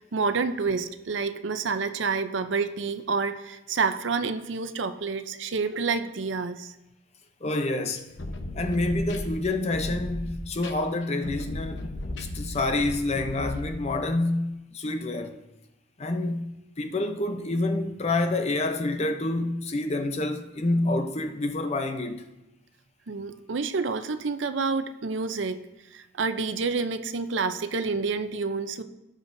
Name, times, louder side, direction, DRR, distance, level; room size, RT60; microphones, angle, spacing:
voice 1, 0.1-6.7 23.1-25.6 25.9-28.8, right 4 dB, 70° right, 0.6 m, -28 dB
voice 2, 7.4-8.1 8.5-11.9 12.2-15.4 16.0-22.3, left 2 dB, 35° left, 0.6 m, -28 dB
sound 1, 8.0-13.9, left 1 dB, 70° left, 0.9 m, -35 dB
17.0 x 6.4 x 2.6 m
head